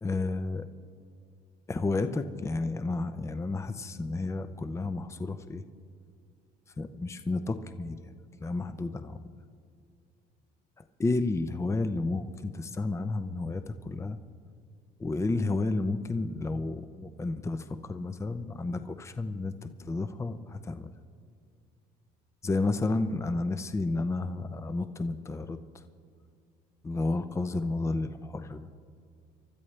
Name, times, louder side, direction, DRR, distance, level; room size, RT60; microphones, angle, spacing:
voice 1, 0.0-0.6 1.7-5.6 6.8-8.0 8.4-9.2 11.0-14.2 15.0-20.9 22.4-25.6 26.8-28.6, left 3 dB, 15° left, 10 dB, 0.6 m, -31 dB
24.0 x 13.0 x 3.3 m, 2.3 s
cardioid pair, 110°, 17 cm